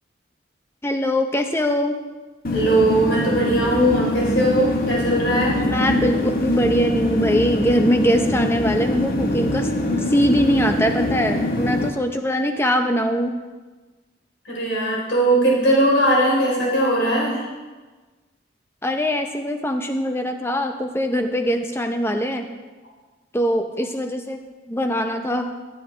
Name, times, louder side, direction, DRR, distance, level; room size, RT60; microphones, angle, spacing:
voice 1, 0.8-2.0 5.7-9.7 10.1-13.4 18.8-22.4 23.3-24.4 24.7-25.5, equal, 10° left, 5 dB, 0.6 m, -22 dB
sound 1, 2.4-11.9, left 1 dB, 45° left, 1.0 m, -23 dB
voice 2, 2.5-5.6 14.5-17.4, right 1 dB, 70° left, -4 dB, 3.7 m, -19 dB
15.0 x 7.9 x 3.2 m, 1.3 s
head